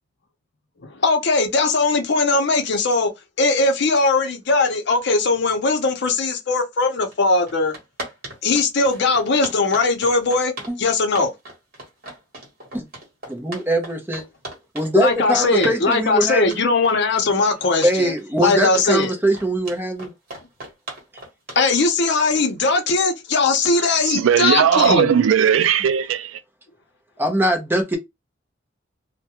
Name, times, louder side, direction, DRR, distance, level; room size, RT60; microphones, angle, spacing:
voice 1, 0.8-3.1 3.4-7.7 8.4-10.5 10.8-11.3 14.9-18.1 18.4-19.1 21.6-25.1, left 3 dB, 55° left, 0.6 m, -19 dB
sound 1, 7.1-7.2 7.5-23.0, right 1 dB, 45° right, 1.2 m, -37 dB
voice 2, 13.3-14.2 14.7-16.6 17.8-20.1 27.2-28.0, right 1 dB, 10° right, 0.6 m, -21 dB
voice 3, 23.7-26.4, right 8 dB, 75° right, 0.3 m, -18 dB
2.3 x 2.1 x 2.8 m
head